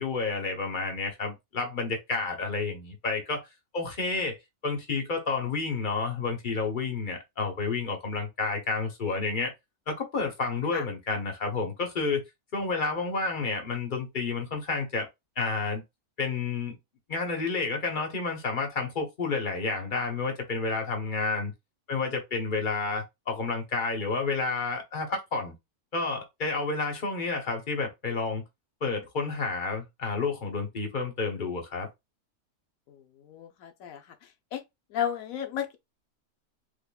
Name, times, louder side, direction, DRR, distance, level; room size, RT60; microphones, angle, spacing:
voice 1, 0.0-3.5 3.7-4.4 4.6-9.5 9.9-12.2 12.5-15.1 15.4-15.8 16.2-16.7 17.1-21.5 21.9-25.5 25.9-28.4 28.8-31.9, left 4 dB, 40° left, 0.9 m, -30 dB
voice 2, 32.9-34.6 34.9-35.8, left 9 dB, 75° left, 1.0 m, -34 dB
3.5 x 3.4 x 2.2 m
omnidirectional pair, 1.5 m